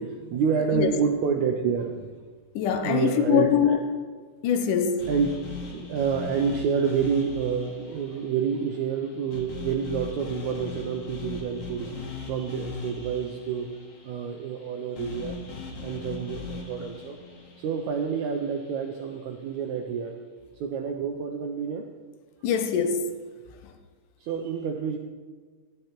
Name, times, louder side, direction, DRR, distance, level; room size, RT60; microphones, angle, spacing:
voice 1, 0.0-2.2 2.8-3.8 5.1-5.4 5.7-13.7 14.0-15.4 15.8-17.2 17.6-20.2 20.6-21.9 24.2-25.0, right 6 dB, 80° right, 3 dB, 1.7 m, -28 dB
voice 2, 2.6-3.8 4.4-5.1 22.4-23.1, left 8 dB, 75° left, 7 dB, 2.2 m, -23 dB
sound 1, 5.0-19.1, left 4 dB, 50° left, 2.2 m, -40 dB
13.5 x 9.8 x 4.4 m, 1.5 s
omnidirectional pair, 4.1 m